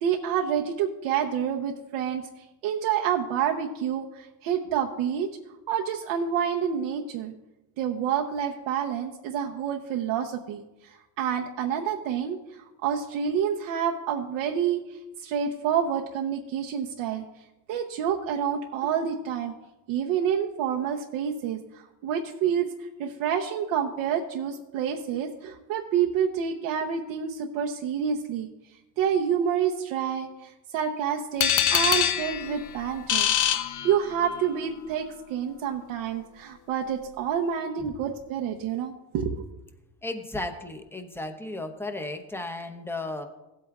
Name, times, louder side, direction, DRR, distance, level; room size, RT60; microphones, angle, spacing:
voice 1, 0.0-2.3 2.6-5.3 5.7-7.3 7.8-17.2 17.7-19.5 19.9-28.5 29.0-33.3 33.8-39.4, right 8 dB, 70° right, 1 dB, 0.9 m, -28 dB
sound 1, 31.4-34.4, left 9 dB, 40° left, 0.5 m, -25 dB
voice 2, 40.0-43.2, left 2 dB, 5° left, 5 dB, 0.9 m, -34 dB
16.0 x 8.5 x 2.4 m, 0.99 s
supercardioid pair, 95°, 49 cm